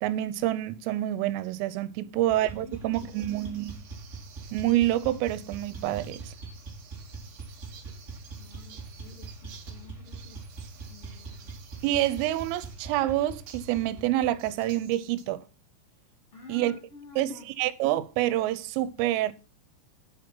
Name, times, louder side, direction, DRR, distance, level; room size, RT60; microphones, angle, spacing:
voice 1, 0.0-3.8 4.5-6.3 11.8-15.4 16.5-16.8 17.2-19.3, right 14 dB, 80° right, 3.3 m, -27 dB
sound 1, 2.3-14.7, right 4 dB, 30° right, 1.5 m, -42 dB
voice 2, 2.6-3.3 8.4-10.4 10.9-11.5 16.3-17.5, left 4 dB, 55° left, 1.6 m, -50 dB
sound 2, 2.9-12.8 13.5-15.3, right 7 dB, 60° right, 2.4 m, -53 dB
8.5 x 7.6 x 5.4 m
omnidirectional pair, 5.9 m